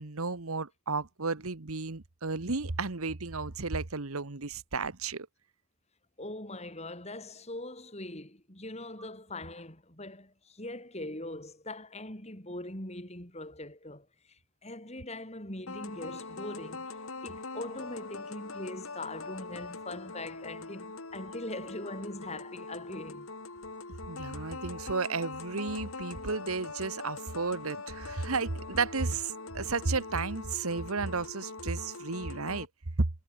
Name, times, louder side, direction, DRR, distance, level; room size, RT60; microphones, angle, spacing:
voice 1, 0.0-5.3 24.1-32.7 33.0-33.1, right 4 dB, 85° right, 1.4 m, -33 dB
voice 2, 6.2-16.9 17.2-23.3, left 1 dB, 30° left, 5.7 m, -41 dB
sound 1, 15.7-32.7, left 3 dB, 75° left, 2.8 m, -43 dB
head